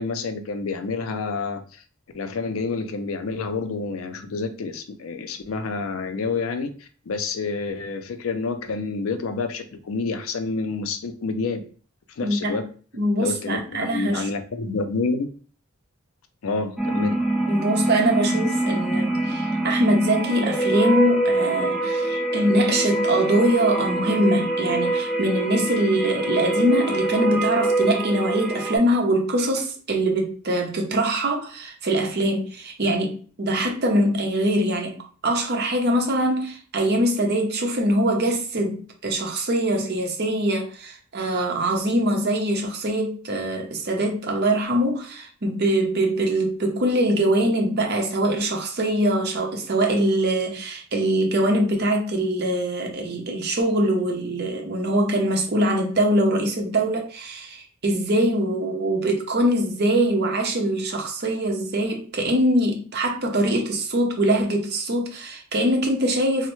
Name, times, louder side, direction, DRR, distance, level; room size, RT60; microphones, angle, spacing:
voice 1, 0.0-1.8 2.1-11.6 12.1-12.6 13.2-15.3 16.4-17.2, left 4 dB, 75° left, 0.4 m, -28 dB
voice 2, 12.2-12.6 12.9-14.3 17.5-66.5, right 1 dB, 50° right, 0.7 m, -23 dB
sound 1, 16.8-28.8, right 2 dB, ahead, 0.4 m, -24 dB
3.2 x 2.0 x 3.0 m
head